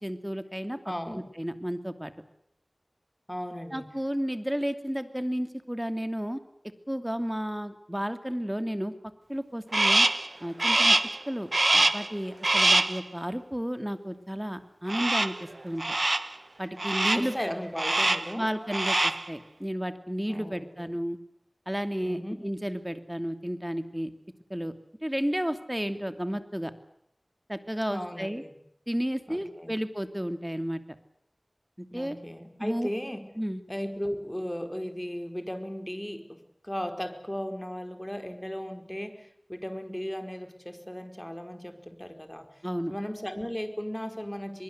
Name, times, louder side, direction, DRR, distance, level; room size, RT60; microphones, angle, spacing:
voice 1, 0.0-0.8 1.1-2.1 3.7-6.4 6.9-8.9 9.3-10.1 10.4-11.0 11.3-16.0 16.6-17.3 18.4-21.2 21.7-24.1 24.5-24.7 25.0-26.7 27.5-28.4 28.9-30.8 31.8-32.2 32.6-32.9 33.4-33.6 42.6-42.9, equal, 10° right, 9 dB, 2.8 m, -32 dB
voice 2, 0.8-1.3 3.3-3.8 17.1-18.5 20.3-20.9 22.0-22.4 27.9-28.5 29.3-29.7 31.9-33.3 33.7-44.6, equal, 15° left, 7 dB, 4.7 m, -36 dB
Crow, 9.7-10.3 10.6-11.2 11.5-12.1 12.4-13.0 14.9-15.4 15.8-16.3 16.8-17.3 17.8-18.3 18.6-19.3, right 2 dB, 60° right, 1.2 m, -24 dB
24.0 x 23.0 x 8.2 m, 0.72 s
wide cardioid pair, 45°, 0 cm